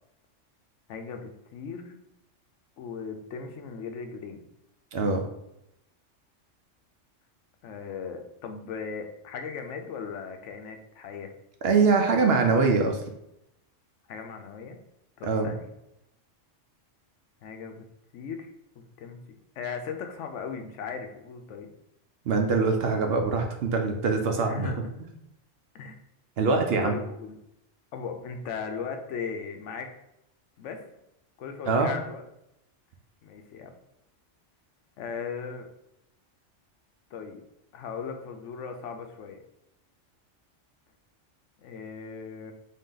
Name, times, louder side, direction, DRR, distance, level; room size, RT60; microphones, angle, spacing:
voice 1, 0.9-2.0 2.8-4.4 7.6-11.3 14.1-14.8 15.2-15.7 17.4-17.8 18.1-18.5 18.8-21.7 24.4-24.9 25.7-25.9 26.8-27.4 27.9-29.9 30.6-30.8 31.4-32.2 33.2-33.7 35.0-35.7 37.1-37.4 37.7-39.4 41.6-42.5, left 5 dB, 75° left, 5 dB, 0.9 m, -37 dB
voice 2, 4.9-5.2 11.6-13.0 15.2-15.5 22.3-24.7 26.4-26.9 31.7-31.9, right 4 dB, 65° right, 3 dB, 0.7 m, -23 dB
3.8 x 2.7 x 3.7 m, 0.83 s
omnidirectional pair, 1.3 m